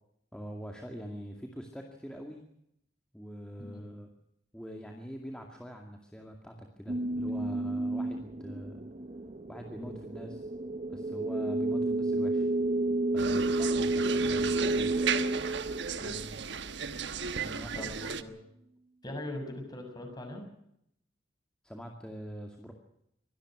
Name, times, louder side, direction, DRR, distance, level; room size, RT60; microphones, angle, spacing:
voice 1, 0.3-2.4 3.1-4.1 4.5-8.9 9.5-10.5 10.9-12.5 13.1-15.1 17.4-17.9 21.6-22.7, equal, 5° left, 2 dB, 2.3 m, -44 dB
sound 1, 6.9-16.7, right 2 dB, 35° right, 0.8 m, -31 dB
sound 2, 13.2-18.2, right 6 dB, 65° right, 1.2 m, -35 dB
voice 2, 17.7-18.4 19.0-20.4, left 1 dB, 20° left, 4 dB, 6.8 m, -41 dB
24.5 x 18.5 x 6.2 m, 0.75 s
head